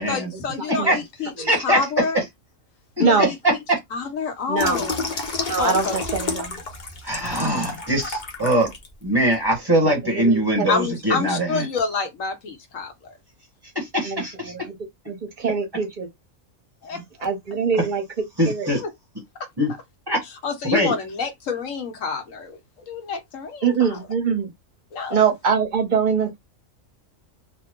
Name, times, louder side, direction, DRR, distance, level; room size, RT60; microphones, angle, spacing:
voice 1, 0.1-1.3 1.6-2.3 3.0-3.6 3.9-5.0 5.6-6.0 7.2-7.8 10.7-13.1 16.8-17.3 18.8-18.9 20.2-22.6 22.9-24.0 24.9-25.2, left 5 dB, 75° left, 1.3 m, -28 dB
voice 2, 1.4-1.8 3.0-3.3 3.7-3.8 7.0-8.7 9.0-11.6 13.7-14.5 17.8-17.9 18.4-18.8 19.6-19.7 20.1-20.2 20.7-20.9, right 1 dB, 20° right, 1.2 m, -22 dB
voice 3, 3.0-3.3 4.5-4.8 5.5-6.6 9.8-10.7 14.0-14.8 15.1-16.1 17.2-18.0 18.4-18.7 23.6-24.5 25.1-26.4, right 6 dB, 40° right, 0.9 m, -23 dB
Water tap faucet / Sink (filling or washing), 4.6-8.9 9.3-9.5, left 3 dB, 40° left, 0.8 m, -30 dB
2.9 x 2.2 x 3.6 m
omnidirectional pair, 1.4 m